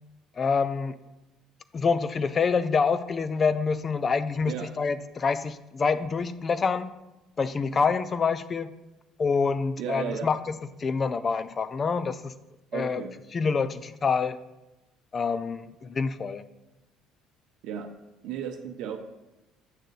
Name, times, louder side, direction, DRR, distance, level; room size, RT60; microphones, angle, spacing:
voice 1, 0.4-1.0 1.7-6.9 7.4-8.7 9.2-10.4 10.8-12.3 12.7-13.0 13.3-14.4 15.1-16.4, left 5 dB, 35° left, 14 dB, 0.4 m, -26 dB
voice 2, 9.8-10.3 12.7-13.2 17.6-17.9 18.2-19.0, right 8 dB, 75° right, 4 dB, 0.6 m, -34 dB
8.8 x 6.6 x 3.2 m, 0.99 s
cardioid pair, 105°, 0 cm